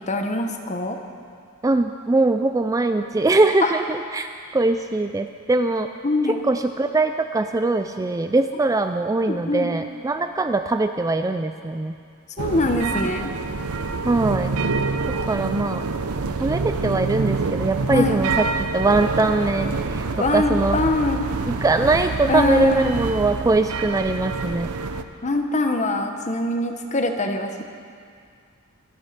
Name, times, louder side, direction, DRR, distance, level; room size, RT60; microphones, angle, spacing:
voice 1, 0.1-1.0 3.6-3.7 6.0-6.4 9.3-9.7 12.4-13.3 17.9-18.2 20.1-21.3 22.3-22.8 25.2-27.6, left 2 dB, 35° left, 5 dB, 1.1 m, -23 dB
voice 2, 1.6-5.9 6.3-11.9 14.1-14.5 15.3-15.9 16.4-20.8 21.5-24.7, right 2 dB, 15° right, 8 dB, 0.3 m, -22 dB
sound 1, 12.4-25.0, right 4 dB, 80° right, 0.7 m, -26 dB
24.0 x 8.5 x 5.8 m, 2.3 s
head